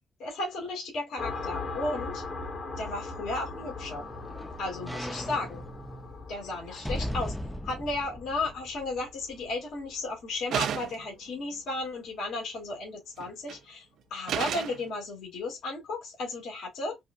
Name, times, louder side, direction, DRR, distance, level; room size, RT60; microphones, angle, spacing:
voice 1, 0.2-2.2 2.8-4.1 4.6-5.6 6.3-7.3 7.6-13.9 14.1-17.0, left 2 dB, 70° left, 2.4 m, -34 dB
sound 1, 1.2-10.4, left 3 dB, 45° left, 1.5 m, -40 dB
sound 2, 3.2-9.5 9.9-10.0, equal, ahead, 0.4 m, -39 dB
sound 3, 10.5-11.1 13.2-13.6 14.3-14.8, right 9 dB, 75° right, 0.5 m, -31 dB
5.3 x 2.3 x 2.4 m
cardioid pair, 90°, 0 cm